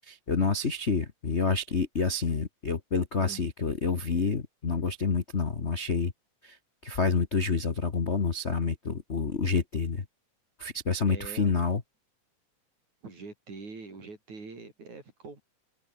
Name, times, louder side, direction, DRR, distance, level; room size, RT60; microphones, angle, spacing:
voice 1, 0.1-6.1 6.4-6.6 6.8-10.0 10.6-11.8, left 4 dB, 45° left, 0.9 m, -28 dB
voice 2, 11.1-11.6 13.0-15.4, right 4 dB, 65° right, 7.7 m, -44 dB
open air
omnidirectional pair, 3.6 m